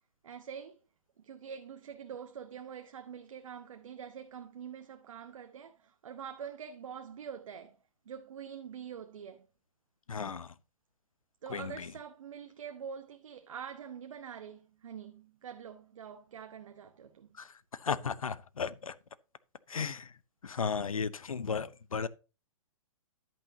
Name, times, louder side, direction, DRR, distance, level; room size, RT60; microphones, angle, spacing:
voice 1, 0.2-0.8 1.2-7.8 8.1-9.5 11.4-17.3, right 7 dB, 70° right, 1.0 m, -45 dB
voice 2, 10.1-10.5 11.5-11.9 17.4-19.0 19.7-20.1 20.4-22.1, left 6 dB, 90° left, 0.7 m, -35 dB
10.5 x 8.7 x 2.8 m
hypercardioid pair, 125°, 17 cm